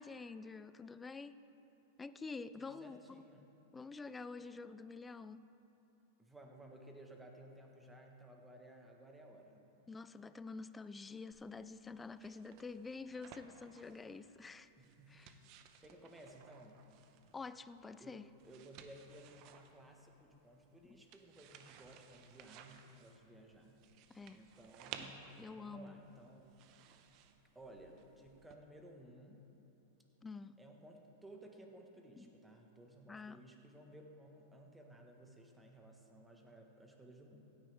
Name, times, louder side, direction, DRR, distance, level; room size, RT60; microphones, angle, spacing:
voice 1, 0.0-1.4 2.0-3.2 3.7-5.5 9.9-14.7 15.1-15.4 17.3-18.3 20.8-21.0 24.1-24.4 25.0-26.0 30.2-30.6 32.2-32.3 33.1-33.4, left 4 dB, 15° left, 14 dB, 0.3 m, -48 dB
voice 2, 2.6-3.5 6.2-9.7 14.8-15.4 15.8-16.9 18.0-18.2 18.4-23.8 24.3-26.6 27.5-29.5 30.6-37.6, right 1 dB, 10° right, 2 dB, 1.3 m, -57 dB
sound 1, 11.3-28.5, right 8 dB, 45° right, 0.8 m, -58 dB
16.0 x 9.6 x 3.5 m, 3.0 s
hypercardioid pair, 125°, 0 cm